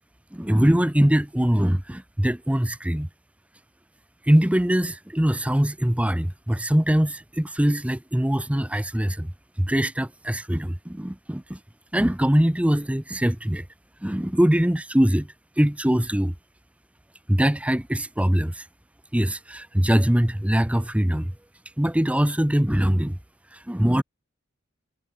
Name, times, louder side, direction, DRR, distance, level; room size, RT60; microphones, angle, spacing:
voice 1, 0.3-3.1 4.2-9.3 9.6-11.6 11.9-13.6 14.0-15.3 15.6-16.3 17.3-18.7 19.1-21.3 21.8-23.2 23.5-24.0, equal, 5° right, 0.8 m, -22 dB
head